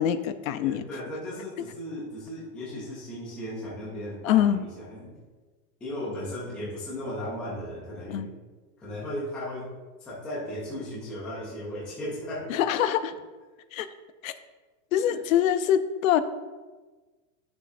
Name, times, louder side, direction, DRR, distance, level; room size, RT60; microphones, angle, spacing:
voice 1, 0.0-0.8 4.2-4.6 8.1-8.3 12.5-13.1 13.7-13.9 14.2-14.3 14.9-16.2, left 10 dB, 55° left, 12 dB, 0.6 m, -24 dB
voice 2, 0.6-5.1 5.8-8.2 8.8-9.7 10.0-12.6 15.0-15.2, left 1 dB, 5° left, -7 dB, 0.3 m, -36 dB
11.5 x 6.8 x 2.6 m, 1.3 s
supercardioid pair, 160°, 49 cm